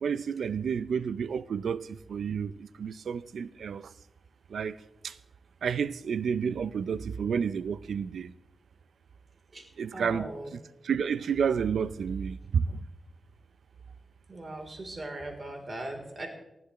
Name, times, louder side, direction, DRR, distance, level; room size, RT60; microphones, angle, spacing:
voice 1, 0.0-3.9 4.5-4.8 5.0-5.1 5.6-8.3 9.8-10.6 10.8-12.8, right 7 dB, 80° right, 0.5 m, -30 dB
voice 2, 9.5-10.5 14.3-16.3, right 1 dB, 40° right, 3.5 m, -39 dB
20.0 x 14.0 x 3.1 m
cardioid pair, 80°, 0 cm